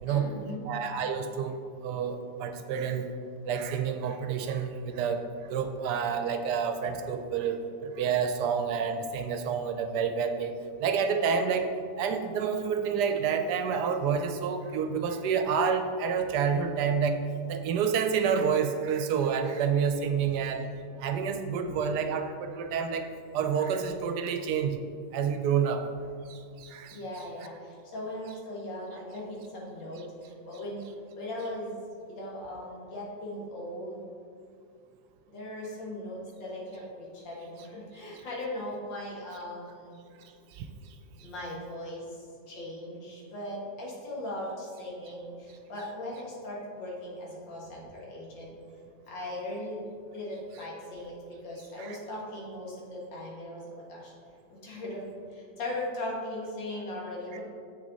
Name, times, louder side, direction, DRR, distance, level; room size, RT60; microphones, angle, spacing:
voice 1, 0.1-0.7 26.9-30.9 31.2-34.1 35.3-40.0 41.2-42.2 42.5-48.6 49.1-49.8 50.1-54.1 54.5-57.4, left 1 dB, 90° left, -4 dB, 2.3 m, -39 dB
voice 2, 0.6-3.1 3.4-5.2 5.5-11.7 12.0-17.2 17.5-20.7 21.0-23.1 23.3-24.8 25.1-25.8 26.3-27.0 40.6-40.7 51.8-52.0, right 6 dB, 75° right, 7 dB, 1.1 m, -29 dB
7.6 x 6.2 x 4.0 m, 2.3 s
omnidirectional pair, 1.9 m